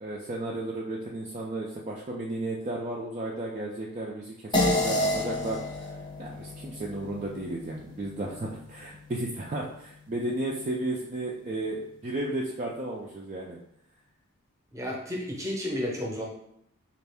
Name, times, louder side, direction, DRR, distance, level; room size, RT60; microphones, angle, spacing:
voice 1, 0.0-5.6 5.8-5.9 6.2-13.6, right 2 dB, 30° right, -3 dB, 0.4 m, -34 dB
sound 1, 4.5-9.3, left 1 dB, 20° left, 0.5 m, -30 dB
voice 2, 14.7-16.3, left 1 dB, 15° right, -2 dB, 0.7 m, -32 dB
4.2 x 2.5 x 3.4 m, 0.71 s
head